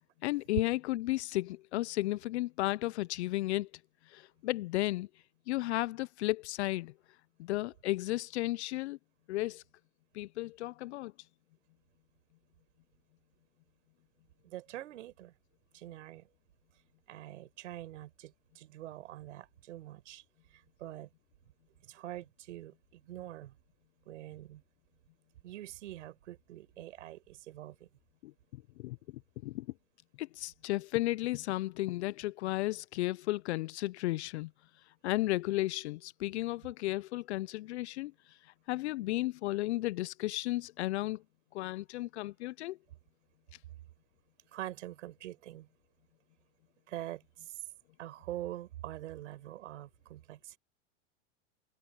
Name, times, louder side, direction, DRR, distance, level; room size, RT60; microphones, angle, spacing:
voice 1, 0.2-3.7 4.1-5.1 5.5-6.9 7.4-9.0 9.3-9.6 10.1-11.1 28.2-29.0 29.4-29.7 30.2-34.5 35.0-38.4 38.7-41.2 41.5-42.8, left 18 dB, 65° left, 0.5 m, -34 dB
voice 2, 14.4-15.4 15.7-16.3 17.1-20.2 20.5-21.1 21.8-23.6 24.1-24.6 25.4-27.9 44.5-45.7 46.9-47.6 48.0-50.6, right 14 dB, 70° right, 5.7 m, -45 dB
supercardioid pair, 155°, 38 cm